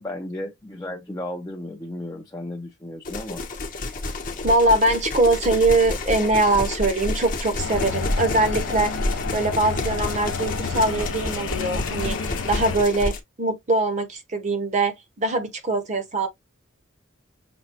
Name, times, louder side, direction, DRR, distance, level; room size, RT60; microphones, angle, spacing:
voice 1, 0.0-3.4, left 1 dB, 15° left, 0.5 m, -34 dB
sound 1, 3.0-13.2, left 2 dB, 45° left, 0.9 m, -29 dB
voice 2, 4.4-8.9 9.3-16.3, right 2 dB, 35° right, 0.8 m, -22 dB
sound 2, 7.6-12.8, left 4 dB, 75° left, 0.5 m, -30 dB
6.1 x 2.2 x 2.9 m
head